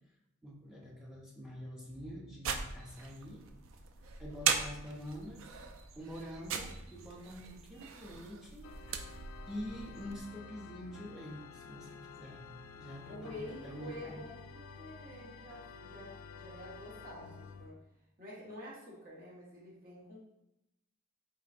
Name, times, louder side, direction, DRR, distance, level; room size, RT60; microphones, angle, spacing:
voice 1, 0.4-3.4 4.2-5.5 5.9-8.7 9.5-12.5 12.7-14.2, equal, 5° right, -3 dB, 0.6 m, -46 dB
sound 1, 2.4-10.2, right 6 dB, 70° right, 0.3 m, -39 dB
Organ, 8.6-17.7, left 5 dB, 85° left, 0.3 m, -51 dB
voice 2, 13.1-17.8 18.2-20.2, left 1 dB, 45° right, -6 dB, 1.2 m, -48 dB
3.8 x 3.0 x 2.5 m, 0.85 s
head